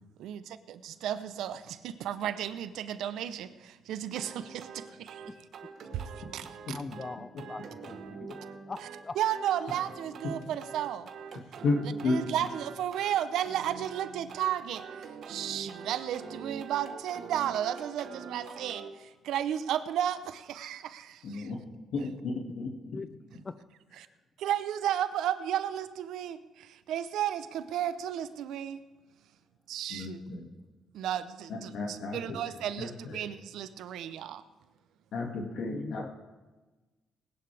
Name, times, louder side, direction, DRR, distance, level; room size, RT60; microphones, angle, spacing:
voice 1, 0.2-5.5 5.9-6.8 9.1-11.1 12.1-14.9 15.3-21.4 24.0-24.1 24.4-28.8 29.7-30.2 30.9-34.4, right 10 dB, 80° right, 0.7 m, -33 dB
sound 1, 4.1-18.9, right 6 dB, 65° right, 1.2 m, -45 dB
voice 2, 6.7-7.6 7.9-8.3 8.7-8.8 9.0-9.1 22.9-23.1 23.4-23.5 35.7-36.1, left 4 dB, 30° left, 0.5 m, -40 dB
voice 3, 11.6-12.2 21.2-21.6 21.9-23.0 29.9-30.5 31.5-32.4 32.8-33.3 35.1-36.1, left 3 dB, 70° left, 2.1 m, -33 dB
19.5 x 11.0 x 3.4 m
cardioid pair, 90°, 0 cm